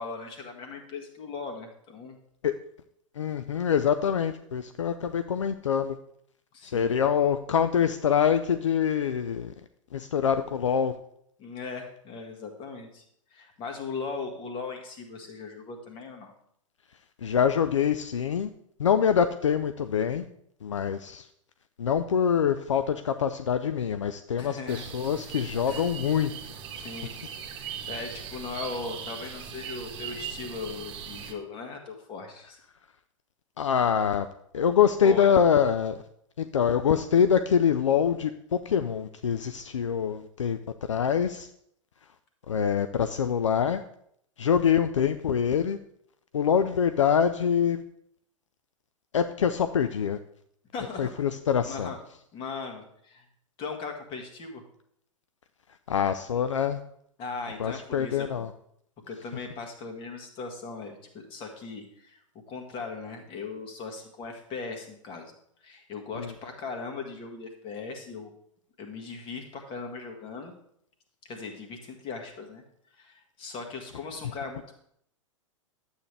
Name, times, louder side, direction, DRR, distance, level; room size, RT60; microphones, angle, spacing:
voice 1, 0.0-2.2 6.5-6.9 11.4-13.0 13.3-16.3 24.4-24.9 25.7-25.9 26.8-27.1 27.6-32.6 35.0-35.4 50.7-51.2 51.7-52.0 52.3-53.3 53.6-54.6 57.2-58.5 59.1-62.2 62.5-65.3 65.6-68.3 68.8-70.5 71.3-72.6 72.9-74.8, left 4 dB, 30° left, 3 dB, 1.9 m, -38 dB
voice 2, 3.2-6.0 6.6-9.5 9.9-10.9 17.2-18.5 18.8-20.2 20.6-21.3 21.8-26.3 33.6-34.3 34.5-36.0 36.4-40.6 40.9-41.5 42.5-43.8 44.4-45.8 46.3-47.8 49.1-50.2 51.0-51.9 55.9-56.8 57.6-58.5 66.2-66.3, left 8 dB, 65° left, 10 dB, 0.5 m, -25 dB
sound 1, 24.7-31.3, right 7 dB, 30° right, 1.4 m, -39 dB
12.0 x 8.1 x 3.4 m, 0.71 s
figure-of-eight pair, 100°, 17 cm